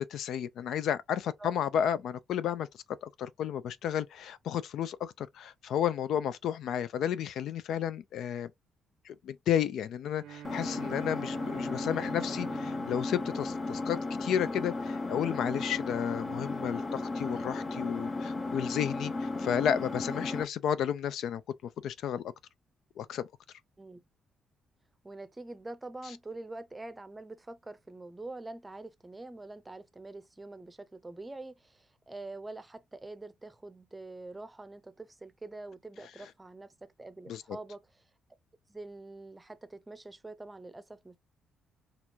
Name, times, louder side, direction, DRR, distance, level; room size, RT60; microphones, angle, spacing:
voice 1, 0.0-2.7 3.0-8.5 9.1-21.4 21.8-22.2 23.0-23.3 37.3-37.4, left 9 dB, 75° left, 0.4 m, -32 dB
Bowed string instrument, 10.2-14.5, right 11 dB, 75° right, 0.3 m, -48 dB
Engine, 10.4-20.4, left 3 dB, 35° left, 0.7 m, -35 dB
voice 2, 25.0-37.9 38.7-41.2, right 2 dB, 15° right, 0.6 m, -45 dB
4.3 x 2.5 x 2.8 m
cardioid pair, 90°, 0 cm